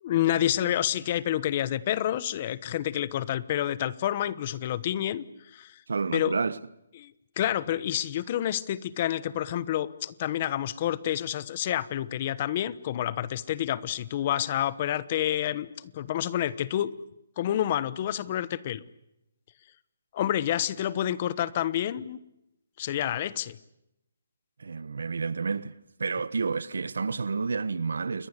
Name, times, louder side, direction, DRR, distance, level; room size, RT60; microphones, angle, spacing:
voice 1, 0.0-5.2 5.5-5.8 6.1-6.3 7.0-17.0 17.4-18.8 20.1-22.2 22.8-23.6, left 11 dB, 25° left, 1.1 m, -28 dB
voice 2, 5.9-6.6 24.6-25.7 26.0-28.3, right 4 dB, 80° right, 1.4 m, -30 dB
29.0 x 22.5 x 8.2 m
hypercardioid pair, 175°, 0 cm